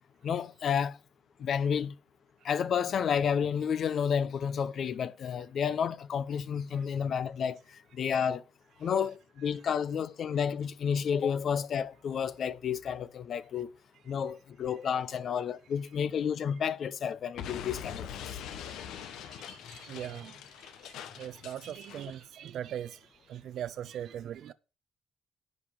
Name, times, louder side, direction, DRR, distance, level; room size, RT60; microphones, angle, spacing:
voice 1, 0.2-1.0 1.4-1.9 2.4-7.6 7.9-8.4 8.8-13.7 14.1-18.4, left 7 dB, 60° left, 0.7 m, -31 dB
Explosion, 17.4-22.1, left 9 dB, 85° left, 0.9 m, -43 dB
voice 2, 18.6-23.0 23.3-24.5, right 10 dB, 75° right, 0.4 m, -41 dB
10.5 x 5.2 x 6.8 m
cardioid pair, 90°, 0 cm